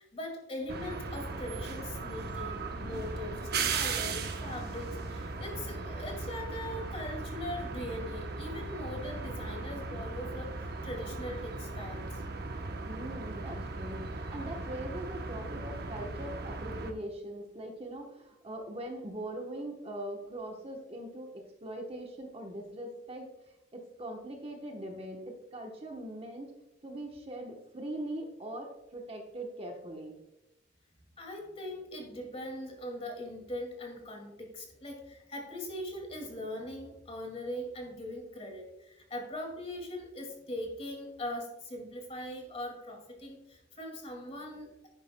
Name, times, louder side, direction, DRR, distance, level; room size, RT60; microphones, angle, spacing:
voice 1, 0.0-3.4 3.7-12.2 31.2-44.9, left 1 dB, 30° left, 1 dB, 2.1 m, -41 dB
sound 1, 0.7-16.9, right 3 dB, 55° right, 0.9 m, -37 dB
voice 2, 12.9-23.3 23.7-26.5 26.8-30.1, right 1 dB, 30° right, 2 dB, 1.0 m, -41 dB
11.0 x 9.5 x 2.2 m, 0.95 s
head